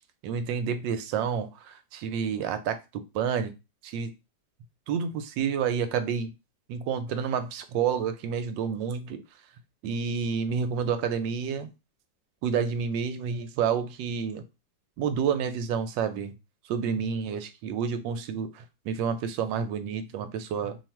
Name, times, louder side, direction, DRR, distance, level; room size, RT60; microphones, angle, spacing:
voice 1, 0.2-2.8 3.1-3.5 3.8-4.1 4.9-6.3 6.7-9.2 9.8-11.7 12.4-14.4 15.0-16.3 16.7-20.8, right 7 dB, 80° right, 10 dB, 1.2 m, -29 dB
3.0 x 2.4 x 4.3 m, 0.26 s
omnidirectional pair, 2.0 m